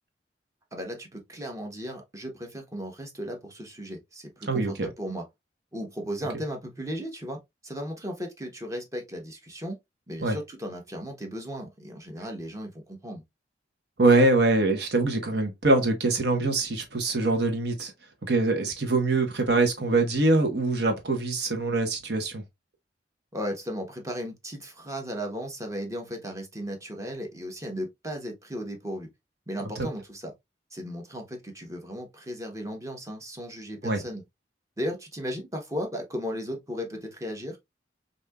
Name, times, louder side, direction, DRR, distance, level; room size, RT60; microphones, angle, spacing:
voice 1, 0.7-5.2 5.7-7.4 7.6-9.8 10.1-13.2 23.3-29.1 29.5-30.3 30.7-34.2 34.8-37.6, equal, 20° right, 0.9 m, -36 dB
voice 2, 4.5-4.9 10.2-10.4 14.0-17.9 18.2-22.4 29.8-29.9 33.8-34.0, right 2 dB, 65° right, 1.1 m, -23 dB
5.1 x 2.7 x 2.2 m
head